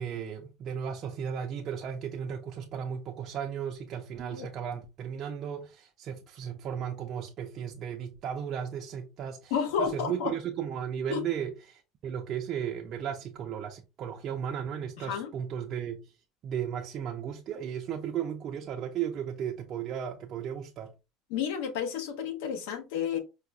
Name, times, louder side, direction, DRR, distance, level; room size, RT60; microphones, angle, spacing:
voice 1, 0.0-9.5 9.8-16.1 16.4-20.9, right 8 dB, 35° right, 0.4 m, -35 dB
voice 2, 9.5-10.3 11.1-11.2 15.0-15.3 21.3-23.2, left 7 dB, 75° left, 0.7 m, -31 dB
4.6 x 2.0 x 2.3 m
cardioid pair, 170°, 0 cm